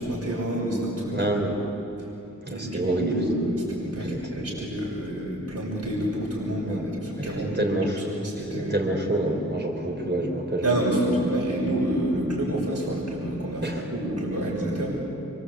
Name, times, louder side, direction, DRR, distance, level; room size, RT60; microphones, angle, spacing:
voice 1, 0.0-1.2 2.5-7.8 8.1-8.8 10.6-15.0, right 1 dB, 50° right, -4 dB, 6.4 m, -28 dB
voice 2, 1.1-1.5 2.4-3.1 4.0-4.2 6.7-6.9 7.2-8.0 8.5-10.7 11.0-11.3 13.6-13.8, right 1 dB, 35° right, 2 dB, 4.5 m, -28 dB
27.5 x 25.0 x 8.5 m, 2.9 s
wide cardioid pair, 60°, 32 cm